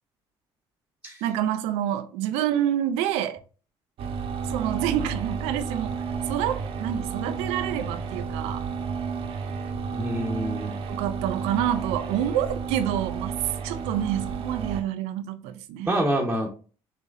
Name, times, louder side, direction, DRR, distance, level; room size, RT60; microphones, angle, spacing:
voice 1, 1.2-3.4 4.4-6.0 6.2-8.7 10.9-16.0, right 11 dB, 85° right, 0.6 m, -28 dB
sound 1, 4.0-14.8, right 6 dB, 65° right, 1.0 m, -31 dB
voice 2, 9.9-10.8 15.8-16.5, right 1 dB, 10° right, 1.1 m, -26 dB
5.6 x 3.1 x 2.6 m
supercardioid pair, 85°, 10 cm